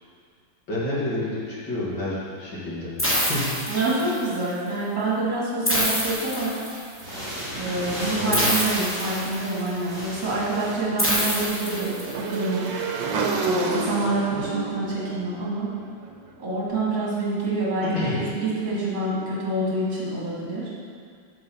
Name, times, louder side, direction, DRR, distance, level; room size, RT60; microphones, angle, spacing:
voice 1, 0.7-2.9 3.2-3.5 8.1-8.5 17.8-18.2, left 1 dB, 75° left, -8 dB, 2.9 m, -29 dB
sound 1, 3.0-4.3 5.6-7.0 8.3-9.7 11.0-12.3, equal, 10° left, 0.9 m, -26 dB
voice 2, 3.7-6.6 7.5-12.7 13.4-15.7 16.4-20.7, right 2 dB, 60° right, -7 dB, 2.8 m, -27 dB
sound 2, 6.9-11.0, equal, 45° right, 2.9 m, -35 dB
Motorcycle / Engine, 10.2-16.3, right 4 dB, 80° right, 1.5 m, -30 dB
6.7 x 6.3 x 5.7 m, 2.1 s
omnidirectional pair, 2.1 m